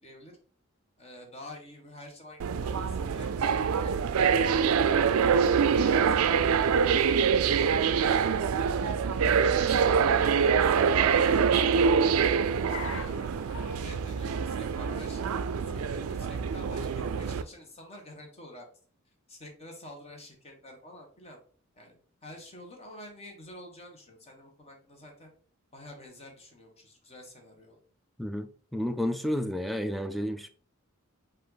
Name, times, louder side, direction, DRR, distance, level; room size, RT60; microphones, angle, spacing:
voice 1, 0.0-0.4 1.0-4.8 5.2-8.4 9.0-12.1 12.8-18.7 19.3-21.4 21.7-21.9 22.2-25.3 25.7-27.8, left 1 dB, 30° left, 1.2 m, -48 dB
sound 1, 2.4-17.4, right 6 dB, 90° right, 0.4 m, -25 dB
Car, 8.3-17.6, left 3 dB, 70° left, 0.8 m, -48 dB
voice 2, 28.2-30.5, equal, ahead, 0.3 m, -31 dB
5.3 x 2.5 x 3.9 m
head